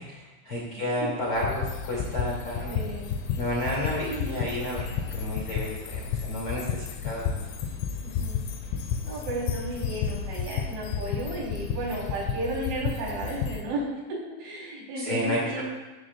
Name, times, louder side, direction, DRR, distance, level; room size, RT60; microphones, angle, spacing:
voice 1, 0.0-2.8 3.4-4.9 5.1-7.4 15.0-15.6, left 1 dB, 35° left, -5 dB, 2.6 m, -31 dB
sound 1, 1.3-13.6, left 7 dB, 85° left, 3.4 m, -32 dB
voice 2, 2.7-3.1 4.0-4.5 8.0-8.4 9.0-15.6, right 1 dB, 75° right, -4 dB, 6.0 m, -34 dB
15.0 x 13.5 x 2.4 m, 1.2 s
omnidirectional pair, 5.5 m